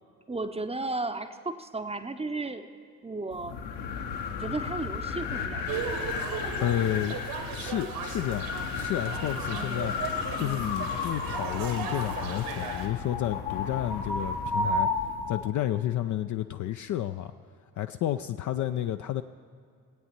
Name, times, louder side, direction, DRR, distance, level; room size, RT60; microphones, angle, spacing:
voice 1, 0.3-2.7 3.0-3.6 4.4-5.9 9.5-10.8, right 3 dB, 15° right, 9 dB, 0.7 m, -35 dB
sound 1, 3.3-15.5, left 4 dB, 60° left, 1.0 m, -33 dB
sound 2, 5.7-12.9, right 6 dB, 65° right, 1.6 m, -37 dB
voice 2, 6.6-7.2 7.5-9.9 10.4-14.9 15.3-17.3 17.8-19.2, left 12 dB, 40° left, 9 dB, 0.4 m, -31 dB
16.5 x 8.8 x 4.4 m, 2.3 s
figure-of-eight pair, 45°, 47 cm